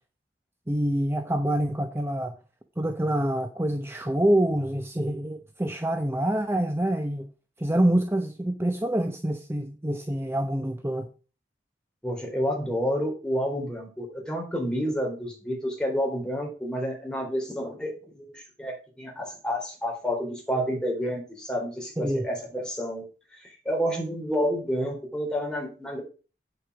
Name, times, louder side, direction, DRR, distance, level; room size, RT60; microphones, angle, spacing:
voice 1, 0.7-2.3 2.8-7.3 7.6-11.1 22.0-22.3, right 1 dB, 15° right, 0.8 m, -26 dB
voice 2, 12.0-23.0 23.3-26.0, equal, 5° left, 4.0 m, -29 dB
8.7 x 7.7 x 4.9 m
head